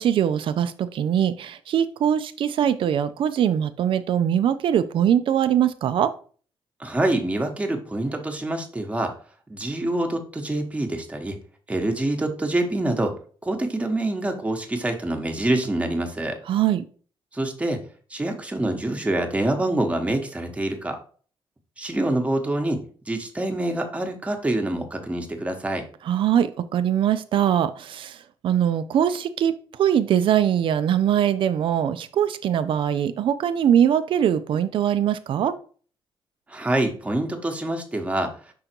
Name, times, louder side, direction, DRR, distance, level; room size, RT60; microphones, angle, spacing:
voice 1, 0.0-6.1 16.5-16.8 26.1-28.2 28.4-29.5 29.8-35.5, right 9 dB, 65° right, 12 dB, 0.5 m, -22 dB
voice 2, 6.8-9.1 9.5-11.4 11.7-13.1 13.4-16.4 17.3-17.8 18.1-21.0 21.8-22.8 23.1-25.8 36.5-38.3, right 1 dB, 15° right, 4 dB, 1.1 m, -26 dB
5.6 x 3.9 x 4.4 m, 0.42 s
cardioid pair, 120°, 10 cm